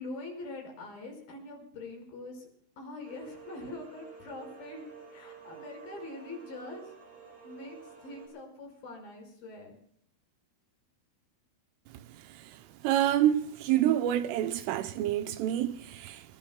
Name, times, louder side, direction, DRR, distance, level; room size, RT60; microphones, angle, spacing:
voice 1, 0.0-2.5 2.8-4.8 5.1-6.9 7.4-9.8, left 2 dB, 45° left, 6.8 m, -43 dB
sound 1, 3.0-8.3, right 8 dB, 35° right, 7.0 m, -50 dB
voice 2, 12.8-16.2, right 12 dB, 80° right, 3.1 m, -27 dB
25.0 x 22.5 x 2.2 m
omnidirectional pair, 5.9 m